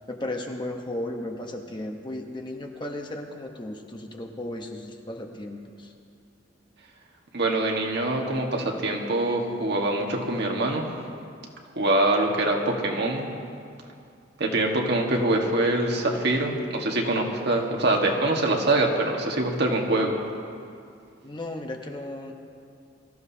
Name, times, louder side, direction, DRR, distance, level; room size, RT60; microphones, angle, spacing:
voice 1, 0.1-5.9 21.2-22.3, left 1 dB, 25° left, 2 dB, 1.0 m, -35 dB
voice 2, 7.3-10.8 11.7-13.3 14.4-20.1, right 2 dB, 60° right, 0 dB, 1.6 m, -24 dB
24.0 x 14.0 x 2.8 m, 2.4 s
head